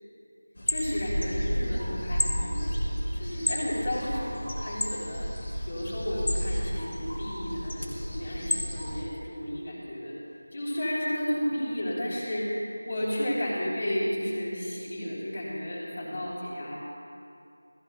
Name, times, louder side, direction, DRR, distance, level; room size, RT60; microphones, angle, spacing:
sound 1, 0.6-9.0, equal, 60° left, 3.0 m, -31 dB
voice 1, 0.7-5.3 5.7-10.1 10.5-12.6 12.8-16.8, equal, 40° left, -6 dB, 3.4 m, -32 dB
18.0 x 16.0 x 2.3 m, 2.6 s
figure-of-eight pair, 175°, 0 cm